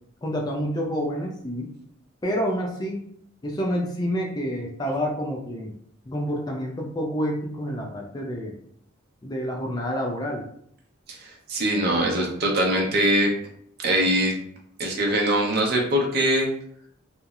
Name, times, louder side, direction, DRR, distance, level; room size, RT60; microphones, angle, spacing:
voice 1, 0.2-1.7 2.2-3.0 3.4-5.7 6.1-8.5 9.2-10.5, equal, 20° left, 0 dB, 0.4 m, -28 dB
voice 2, 11.1-13.3 13.8-14.3 14.8-16.5, right 1 dB, 50° right, -1 dB, 0.6 m, -22 dB
2.9 x 2.0 x 2.3 m, 0.66 s
head